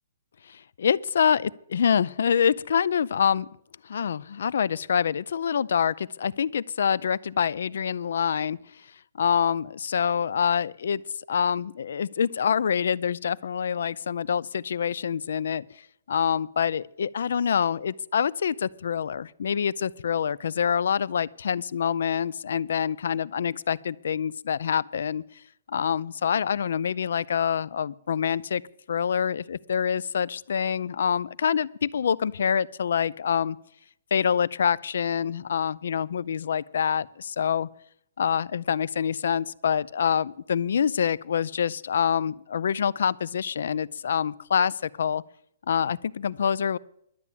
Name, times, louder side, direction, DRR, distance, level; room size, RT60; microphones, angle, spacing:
voice 1, 0.5-3.5 3.8-8.6 9.2-11.0 11.3-15.7 16.1-25.2 25.7-28.6 28.9-33.6 34.1-37.7 38.2-45.2 45.7-46.8, left 7 dB, 65° left, 21 dB, 0.4 m, -26 dB
12.0 x 8.4 x 8.4 m, 0.72 s
hypercardioid pair, 175°, 0 cm